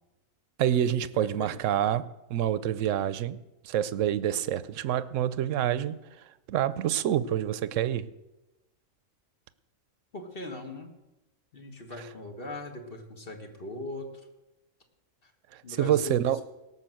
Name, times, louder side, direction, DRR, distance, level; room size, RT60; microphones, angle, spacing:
voice 1, 0.6-3.4 3.6-6.0 6.5-8.1 15.5-16.4, right 11 dB, 75° right, 16 dB, 1.0 m, -27 dB
voice 2, 10.1-10.9 11.5-14.3 15.2-15.3 15.6-16.4, left 2 dB, 45° left, 4 dB, 1.8 m, -40 dB
17.5 x 6.2 x 7.7 m, 1.0 s
omnidirectional pair, 1.4 m